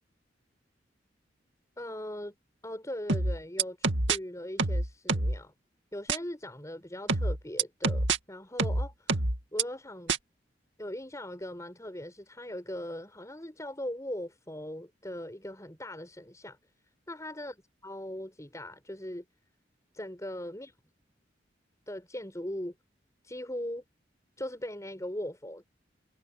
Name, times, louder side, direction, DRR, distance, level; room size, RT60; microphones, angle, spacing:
voice 1, 1.8-2.4 2.6-5.5 5.9-9.2 9.5-10.1 10.8-16.6 17.1-17.6 17.8-19.2 19.9-20.7 21.9-22.7 23.2-23.8 24.4-25.6, left 1 dB, 15° left, 5.7 m, -39 dB
sound 1, 3.1-4.2 4.6-5.4 6.1-6.2 7.1-8.2 8.6-9.6 10.1-10.2, right 3 dB, 85° right, 2.3 m, -26 dB
head